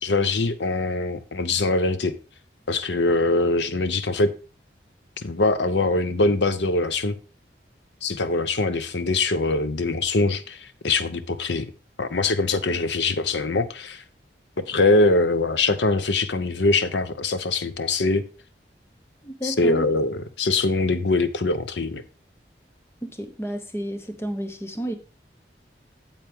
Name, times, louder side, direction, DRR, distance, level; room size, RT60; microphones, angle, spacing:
voice 1, 0.0-2.1 2.7-4.3 5.2-7.2 8.0-11.7 12.0-14.0 14.7-18.2 19.4-22.0, left 3 dB, 90° left, 0.8 m, -23 dB
voice 2, 19.2-19.9 23.0-25.0, right 1 dB, 15° left, 0.9 m, -31 dB
9.1 x 7.4 x 3.6 m
head